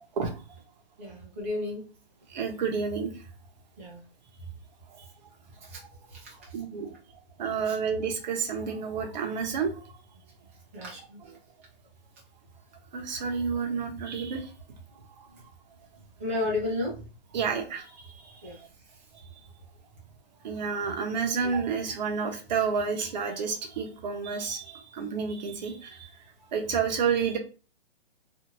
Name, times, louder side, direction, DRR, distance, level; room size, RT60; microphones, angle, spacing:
voice 1, 1.0-1.8 3.8-4.0 5.6-5.8 6.1-6.3 7.7-7.8 10.7-11.2 16.2-17.1 18.4-18.6, left 2 dB, 15° right, -4 dB, 0.4 m, -32 dB
voice 2, 2.3-3.1 5.0-5.1 6.5-6.9 7.4-9.8 12.9-14.5 15.2-15.3 17.3-18.5 20.4-26.1 26.5-27.4, right 6 dB, 40° right, 4 dB, 0.7 m, -30 dB
2.6 x 2.4 x 2.9 m, 0.35 s
hypercardioid pair, 160°, 33 cm